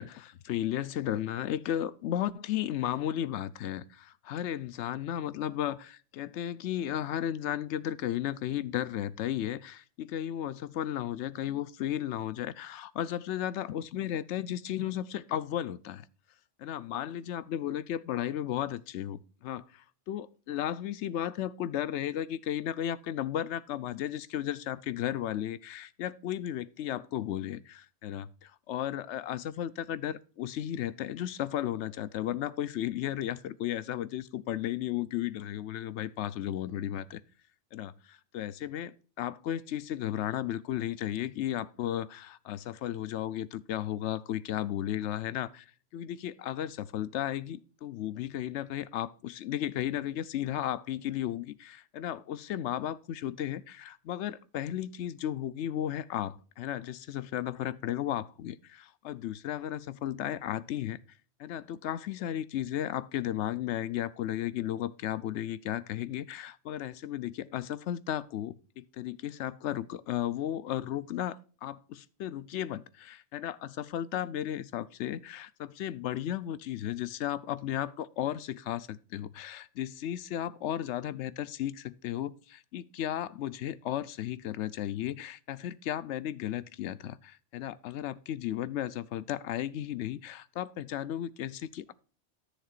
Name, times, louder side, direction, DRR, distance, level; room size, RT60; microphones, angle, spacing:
voice 1, 0.0-16.1 16.6-37.2 37.7-45.7 45.9-61.0 61.4-91.9, left 11 dB, 75° left, 0.9 m, -34 dB
13.5 x 6.7 x 2.4 m
omnidirectional pair, 1.2 m